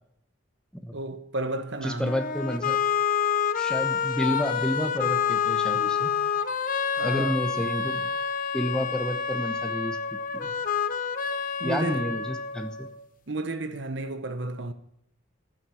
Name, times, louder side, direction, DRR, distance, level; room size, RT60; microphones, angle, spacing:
voice 1, 0.9-2.2 7.0-7.4 11.6-12.1 13.3-14.7, right 2 dB, 60° right, 0.9 m, -32 dB
voice 2, 1.8-2.8 3.6-6.1 7.0-8.1 8.5-10.5 11.6-12.9, equal, 5° left, 0.9 m, -30 dB
sound 1, 2.0-13.0, left 7 dB, 40° left, 0.7 m, -28 dB
12.0 x 9.4 x 6.2 m
head